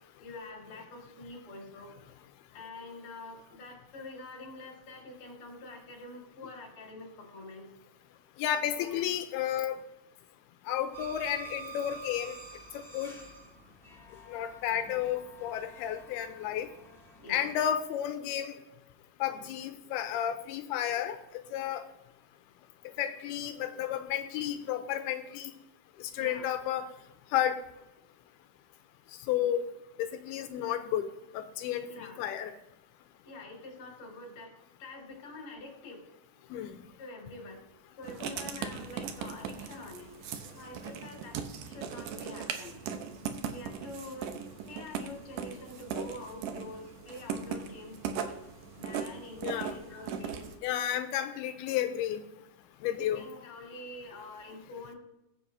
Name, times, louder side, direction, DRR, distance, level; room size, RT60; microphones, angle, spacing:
voice 1, 0.2-1.9 2.5-7.7 8.8-9.0 17.2-17.4 26.2-26.5 31.8-32.2 33.2-36.0 37.0-37.6 38.0-40.1 40.5-42.8 43.5-44.3 44.7-48.4 48.8-50.6 53.0-54.9, left 2 dB, 40° left, 0 dB, 2.7 m, -46 dB
voice 2, 8.4-9.8 10.7-12.4 12.7-13.1 14.3-16.7 17.3-18.6 19.2-21.2 21.5-21.8 23.0-25.5 26.0-26.9 27.3-27.6 29.3-29.7 30.0-31.1 31.3-32.5 36.5-36.8 49.4-49.8 50.6-52.2 52.8-53.3, left 10 dB, 80° left, 9 dB, 2.5 m, -32 dB
sound 1, 10.9-17.7, right 4 dB, 5° left, 0.4 m, -49 dB
Writing, 38.0-50.6, right 7 dB, 80° right, 1.8 m, -39 dB
21.0 x 7.1 x 2.7 m, 0.93 s
omnidirectional pair, 4.7 m